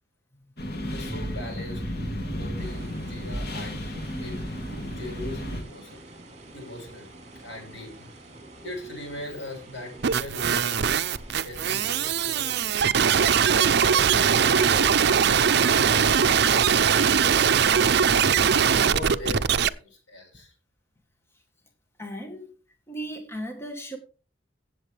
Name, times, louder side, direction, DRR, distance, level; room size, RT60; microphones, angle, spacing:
sound 1, 0.6-5.6, equal, 60° left, 2.7 m, -33 dB
voice 1, 0.8-4.4 4.9-6.0 6.5-7.1 7.4-8.2 8.6-10.9 11.4-12.5 12.9-18.5 18.7-20.5, left 1 dB, 80° left, 6.8 m, -40 dB
sound 2, 2.6-15.6, right 2 dB, 35° right, 3.6 m, -47 dB
sound 3, 10.0-19.7, right 7 dB, 60° right, 0.5 m, -21 dB
voice 2, 22.0-22.6 22.9-24.0, right 1 dB, 15° left, 1.3 m, -36 dB
16.0 x 7.4 x 3.4 m
head